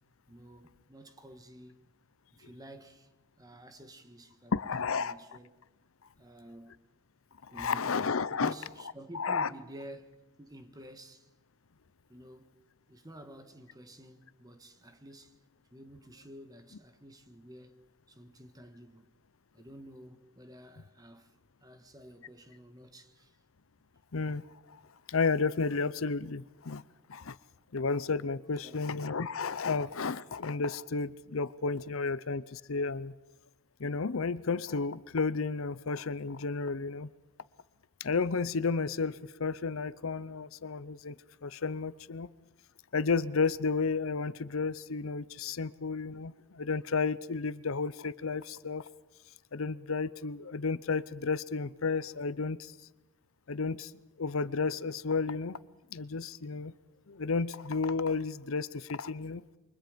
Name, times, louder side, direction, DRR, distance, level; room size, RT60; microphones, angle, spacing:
voice 1, 0.3-1.9 2.4-3.1 3.4-4.5 4.9-5.5 6.2-6.8 7.5-7.9 8.3-11.3 12.1-12.5 12.9-15.3 15.7-19.1 19.5-21.3 21.6-23.4 28.6-28.8, right 1 dB, 15° right, 1.5 m, -51 dB
voice 2, 4.5-5.1 7.5-8.5 9.1-9.5 24.1-24.4 24.7-24.8 25.1-26.8 27.1-27.4 27.7-33.1 33.8-37.1 38.0-41.1 41.4-42.3 42.9-48.9 49.5-52.7 53.5-53.9 54.2-55.6 55.9-56.7 57.1-59.4, left 4 dB, 70° left, 0.7 m, -32 dB
28.0 x 24.5 x 5.2 m
head